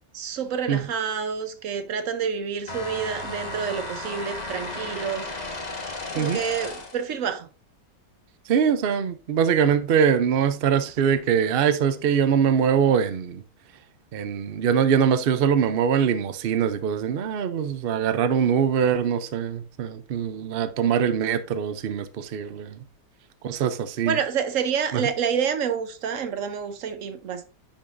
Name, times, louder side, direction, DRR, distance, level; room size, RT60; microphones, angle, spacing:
voice 1, 0.1-5.3 6.1-7.5 24.1-27.4, right 7 dB, 55° right, 1.0 m, -28 dB
sound 1, 2.7-7.1, left 2 dB, 25° left, 1.4 m, -34 dB
voice 2, 8.5-13.4 14.1-22.8 23.4-24.2 24.9-25.0, right 7 dB, 85° right, 0.5 m, -23 dB
10.0 x 5.4 x 2.6 m
omnidirectional pair, 1.9 m